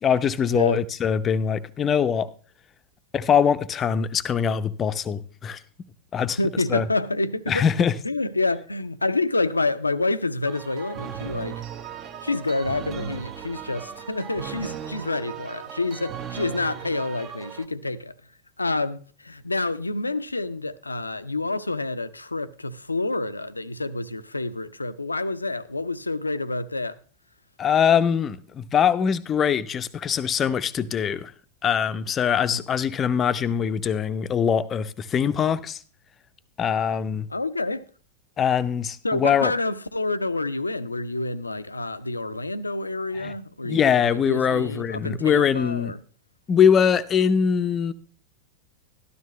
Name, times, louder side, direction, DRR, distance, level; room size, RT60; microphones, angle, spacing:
voice 1, 0.0-2.3 3.1-5.6 6.1-6.4 6.7-6.9 7.5-7.9 27.6-31.3 31.6-35.8 36.6-37.3 38.4-39.5 43.2-43.3 43.7-45.9 46.5-47.9, left 7 dB, 25° left, 0.6 m, -22 dB
voice 2, 6.4-7.6 8.0-11.6 12.2-18.1 18.6-27.0 32.5-32.6 37.3-37.9 39.0-46.0, left 2 dB, 80° left, 0.5 m, -28 dB
sound 1, 10.5-17.7, right 9 dB, 35° right, 1.0 m, -37 dB
12.5 x 12.0 x 3.1 m
figure-of-eight pair, 90°, 0 cm